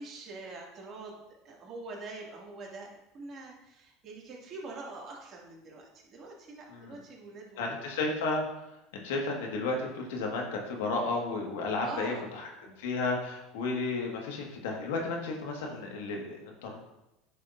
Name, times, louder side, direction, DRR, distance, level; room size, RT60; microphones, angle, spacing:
voice 1, 0.0-2.9 3.1-7.8 11.8-12.3, right 3 dB, 45° right, -2 dB, 2.2 m, -44 dB
voice 2, 7.6-8.4 8.9-12.5 12.8-16.8, left 3 dB, 75° left, 1 dB, 1.6 m, -33 dB
9.9 x 6.3 x 2.6 m, 0.90 s
hypercardioid pair, 80°, 0 cm